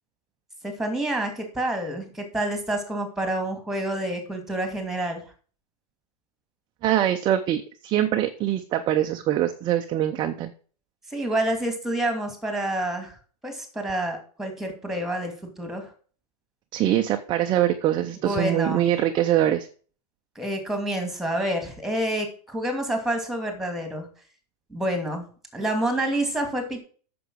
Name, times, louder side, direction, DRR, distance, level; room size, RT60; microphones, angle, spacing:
voice 1, 0.6-5.2 11.1-13.1 13.4-15.9 18.2-18.8 20.4-24.1 24.7-25.2 25.5-26.8, right 1 dB, ahead, 6 dB, 2.5 m, -28 dB
voice 2, 6.8-10.5 16.7-19.7, right 12 dB, 25° right, 6 dB, 0.7 m, -23 dB
9.0 x 6.9 x 6.3 m, 0.41 s
supercardioid pair, 150°, 20 cm